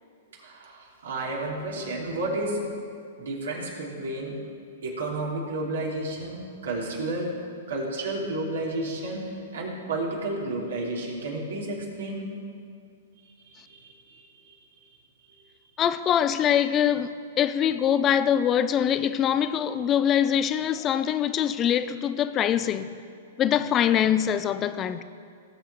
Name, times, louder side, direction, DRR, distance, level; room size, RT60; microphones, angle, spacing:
voice 1, 0.4-2.6 3.2-4.3 4.8-7.3 7.7-12.2 13.4-13.8 14.1-14.5, right 2 dB, 75° right, -3 dB, 3.0 m, -31 dB
voice 2, 15.8-22.9 23.4-25.0, left 9 dB, 30° left, 12 dB, 0.6 m, -23 dB
18.0 x 7.5 x 4.3 m, 2.3 s
hypercardioid pair, 120°, 0 cm